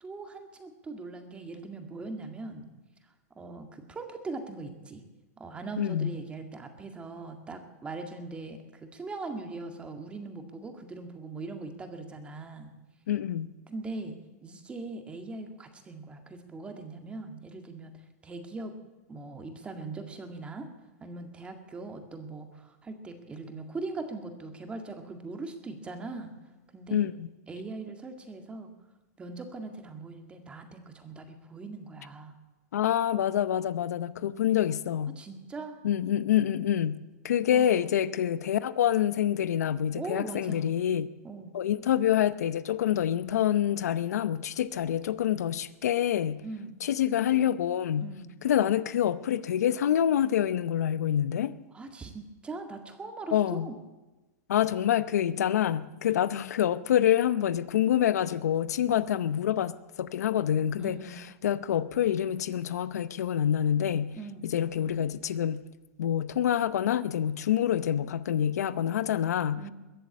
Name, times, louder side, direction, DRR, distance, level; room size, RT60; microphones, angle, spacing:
voice 1, 0.0-2.7 3.4-5.0 5.4-12.7 13.7-17.9 18.2-18.7 19.1-20.7 21.0-26.3 26.7-27.1 27.5-28.7 29.2-32.3 35.2-35.8 37.5-37.7 39.9-40.7 41.2-41.5 46.4-46.8 48.0-48.4 51.7-53.8 58.9-59.1 60.8-61.2 64.2-64.5 69.6-69.7, right 3 dB, 15° right, 1.9 m, -40 dB
voice 2, 5.8-6.2 13.1-13.5 26.9-27.3 32.7-35.2 35.8-41.1 41.5-46.4 46.8-48.1 48.4-51.6 53.3-53.7 54.5-64.2 64.4-65.6 66.0-69.7, left 10 dB, 90° left, 0.7 m, -27 dB
22.0 x 7.8 x 8.4 m
supercardioid pair, 145°, 8 cm